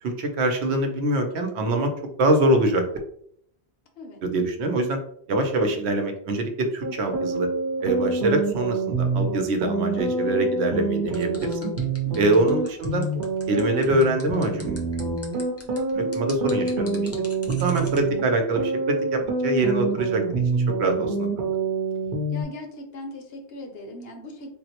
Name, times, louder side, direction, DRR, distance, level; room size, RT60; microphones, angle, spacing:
voice 1, 0.0-1.9 2.2-2.8 4.2-5.0 5.3-7.5 7.8-11.7 12.2-13.1 13.5-14.9 15.9-17.1 17.6-20.2 20.5-21.5, right 2 dB, 90° right, 5 dB, 0.9 m, -24 dB
sound 1, 6.8-22.4, right 3 dB, 55° right, 0.8 m, -27 dB
sound 2, 11.1-18.0, left 2 dB, 25° left, 0.3 m, -43 dB
voice 2, 12.1-12.4 22.3-24.5, left 1 dB, 70° left, 4 dB, 0.9 m, -39 dB
3.6 x 2.0 x 2.8 m, 0.66 s
omnidirectional pair, 1.1 m